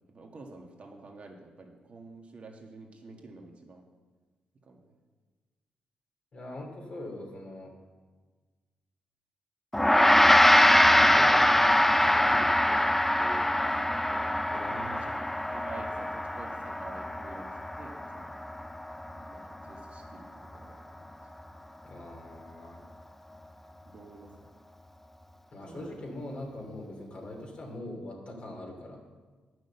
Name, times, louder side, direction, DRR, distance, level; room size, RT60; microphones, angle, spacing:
voice 1, 0.1-3.8 4.6-4.9 13.6-14.3 14.8-18.3 19.1-20.8 23.8-24.5 25.7-26.0, right 3 dB, 50° right, 2 dB, 1.7 m, -48 dB
voice 2, 6.3-7.7 10.6-12.8 13.2-13.6 14.5-15.0 21.8-22.8 25.5-29.0, left 1 dB, 45° left, 0 dB, 2.6 m, -42 dB
Gong, 9.7-19.3, left 1 dB, 10° left, 0.4 m, -23 dB
9.1 x 6.4 x 6.8 m, 1.4 s
supercardioid pair, 60°, 3 cm